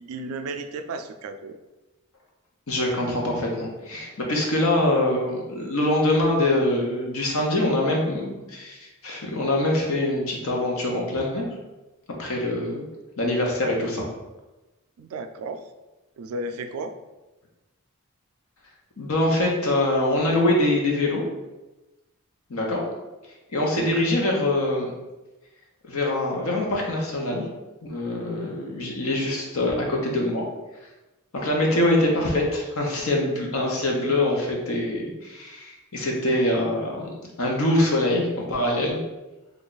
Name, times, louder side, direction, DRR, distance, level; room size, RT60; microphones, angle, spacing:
voice 1, 0.0-1.6 15.0-15.6 16.2-17.0 23.7-24.0, right 2 dB, 75° right, 8 dB, 0.3 m, -34 dB
voice 2, 2.7-11.5 12.2-12.9 13.2-14.1 19.0-21.3 22.5-22.8 23.5-24.9 25.9-27.5 27.8-30.4 31.3-37.1 37.4-39.0, left 1 dB, 75° left, -1 dB, 0.8 m, -24 dB
3.3 x 2.3 x 3.9 m, 1.1 s
head